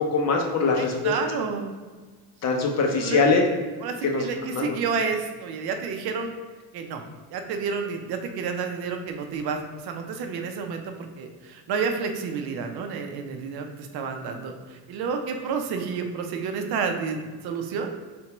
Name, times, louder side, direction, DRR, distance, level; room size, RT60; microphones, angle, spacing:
voice 1, 0.0-1.1 2.4-3.5 4.0-4.2 4.5-4.7, left 4 dB, 40° left, 1 dB, 0.6 m, -22 dB
voice 2, 0.8-1.7 3.0-3.4 3.8-6.3 6.7-7.0 7.3-18.0, right 5 dB, 65° right, 5 dB, 0.6 m, -30 dB
4.5 x 3.5 x 3.0 m, 1.4 s
cardioid pair, 150°, 40 cm